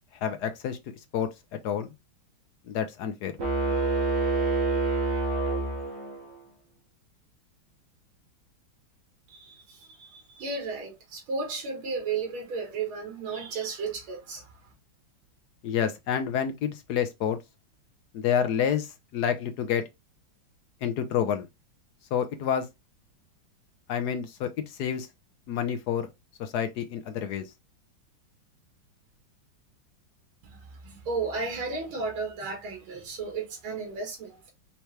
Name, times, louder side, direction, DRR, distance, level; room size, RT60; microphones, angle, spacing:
voice 1, 0.2-0.8 1.1-1.9 2.7-3.3 15.6-17.4 18.1-19.8 20.8-21.5 22.1-22.7 23.9-25.1 25.5-26.1 26.4-27.5, left 8 dB, 70° left, 1.0 m, -28 dB
sound 1, 3.4-6.3, right 3 dB, 65° right, 2.0 m, -27 dB
voice 2, 9.3-9.6 9.9-14.4 30.8-34.4, right 4 dB, 80° right, 2.4 m, -33 dB
5.6 x 2.9 x 3.2 m
omnidirectional pair, 2.2 m